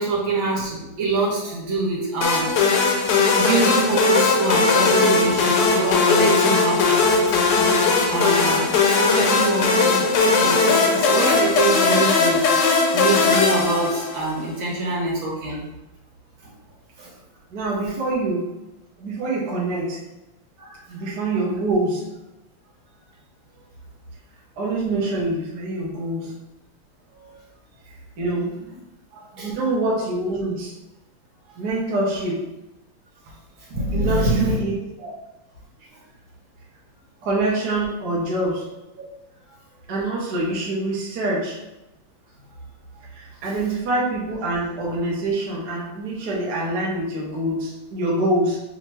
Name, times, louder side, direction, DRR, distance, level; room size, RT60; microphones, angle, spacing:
voice 1, 0.0-2.5 3.3-7.0 7.5-7.8 8.1-8.7 9.0-12.4 12.9-15.7 16.4-16.5 17.0-17.1 20.6-20.8 29.1-29.5 33.7-34.6, right 2 dB, 80° right, -5 dB, 2.1 m, -24 dB
sound 1, 2.2-14.4, left 4 dB, 70° left, 1.3 m, -19 dB
voice 2, 17.5-18.5 19.0-20.1 20.9-22.1 24.6-26.4 28.2-28.6 29.4-30.8 31.6-32.5 33.9-35.1 37.2-38.8 39.9-41.6 43.1-48.6, right 2 dB, 60° right, -4 dB, 1.4 m, -25 dB
5.5 x 2.8 x 3.1 m, 0.95 s
omnidirectional pair, 2.1 m